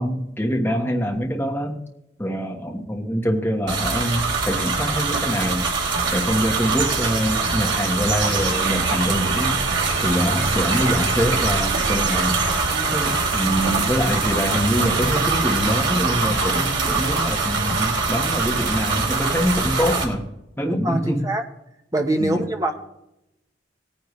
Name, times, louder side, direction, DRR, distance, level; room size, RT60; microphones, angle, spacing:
voice 1, 0.0-1.8 2.2-5.7 6.1-9.6 10.0-12.4 12.9-20.2 20.6-21.3 22.2-22.4, equal, 10° left, 0 dB, 1.3 m, -24 dB
sound 1, 3.7-20.0, right 4 dB, 90° right, 2.8 m, -23 dB
voice 2, 12.5-13.1 20.6-21.4 21.9-22.7, right 1 dB, 20° right, 4 dB, 1.1 m, -24 dB
17.5 x 10.0 x 3.2 m, 0.84 s
head